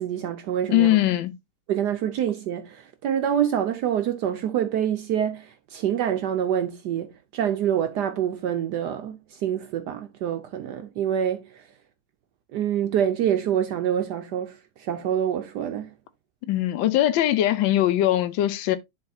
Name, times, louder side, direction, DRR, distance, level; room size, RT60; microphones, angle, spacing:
voice 1, 0.0-0.9 1.7-11.6 12.5-15.9, right 9 dB, 75° right, 0.9 m, -26 dB
voice 2, 0.7-1.3 16.5-18.8, left 13 dB, 70° left, 1.3 m, -21 dB
10.5 x 4.0 x 2.6 m
omnidirectional pair, 2.4 m